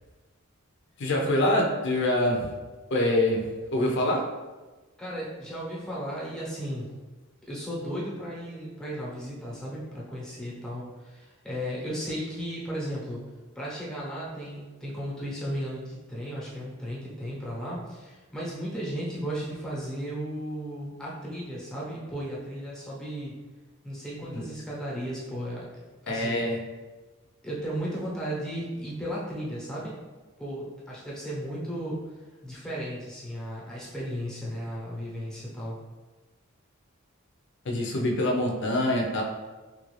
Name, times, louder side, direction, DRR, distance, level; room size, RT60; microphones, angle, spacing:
voice 1, 1.0-2.5 2.9-3.4 3.7-4.2 24.3-24.4 26.1-26.6 37.7-39.2, left 1 dB, 60° left, 0 dB, 0.5 m, -25 dB
voice 2, 5.0-6.9 7.5-13.3 13.5-23.3 23.8-25.7 26.0-26.4 27.4-30.0 30.4-32.0 32.4-35.8, equal, 5° left, -7 dB, 0.9 m, -35 dB
3.3 x 2.4 x 3.1 m, 1.2 s
head